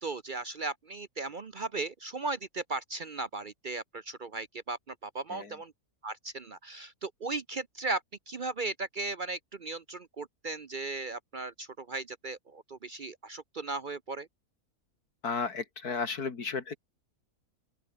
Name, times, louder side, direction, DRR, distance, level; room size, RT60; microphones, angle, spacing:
voice 1, 0.0-5.7 6.0-8.0 8.3-14.3, right 3 dB, 45° right, 0.7 m, -37 dB
voice 2, 15.2-16.8, left 5 dB, 85° left, 2.9 m, -33 dB
open air
omnidirectional pair, 1.6 m